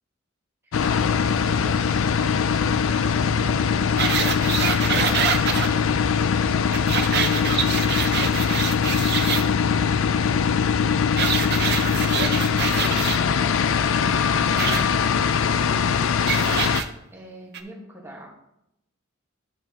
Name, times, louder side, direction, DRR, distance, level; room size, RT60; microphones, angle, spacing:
sound 1, 0.7-16.8, left 6 dB, 70° left, 0.4 m, -22 dB
voice 1, 1.4-6.2 6.6-13.6 14.2-16.1 17.1-18.3, right 1 dB, 10° right, -2 dB, 1.4 m, -42 dB
sound 2, 4.0-5.7 6.7-9.4 11.2-13.2 14.6-14.8 16.3-16.9 17.5-17.6, right 7 dB, 50° right, 0.6 m, -25 dB
11.0 x 5.6 x 2.9 m, 0.83 s
head